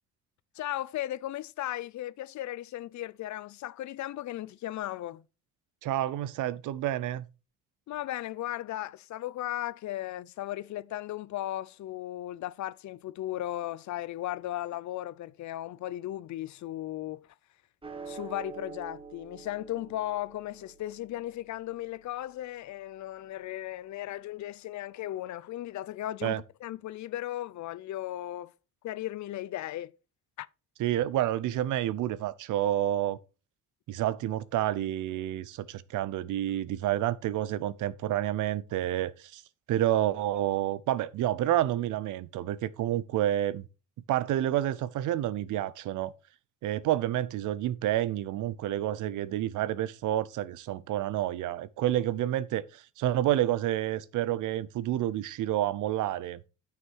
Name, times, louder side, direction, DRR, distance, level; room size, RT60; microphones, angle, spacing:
voice 1, 0.5-5.3 7.9-17.3 18.1-28.5 28.8-29.9 30.4-30.5, left 14 dB, 70° left, 0.6 m, -36 dB
voice 2, 5.8-7.3 26.2-26.4 30.8-33.2 33.9-39.4 39.7-43.7 44.1-46.1 46.6-56.4, right 13 dB, 85° right, 0.7 m, -29 dB
sound 1, 17.8-24.4, right 5 dB, 20° right, 1.8 m, -48 dB
9.7 x 5.8 x 4.6 m
cardioid pair, 90°, 30 cm